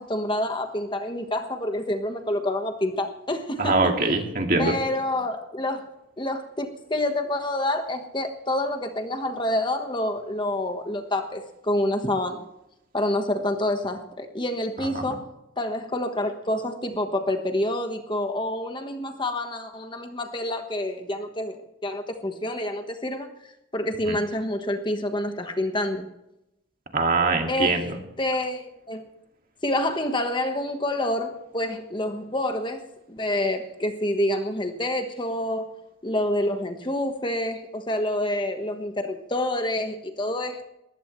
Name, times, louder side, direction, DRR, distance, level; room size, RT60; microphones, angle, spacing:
voice 1, 0.0-3.9 4.6-5.9 6.2-12.4 12.9-15.3 15.6-23.3 23.7-26.1 27.5-27.9 28.2-29.0 29.6-32.8 33.1-35.7 36.0-40.6, left 1 dB, 25° left, 6 dB, 1.3 m, -27 dB
voice 2, 3.6-4.7 14.9-15.2 24.1-24.2 26.9-28.0, right 3 dB, 45° right, 3 dB, 2.2 m, -23 dB
20.5 x 15.0 x 3.2 m, 0.87 s
head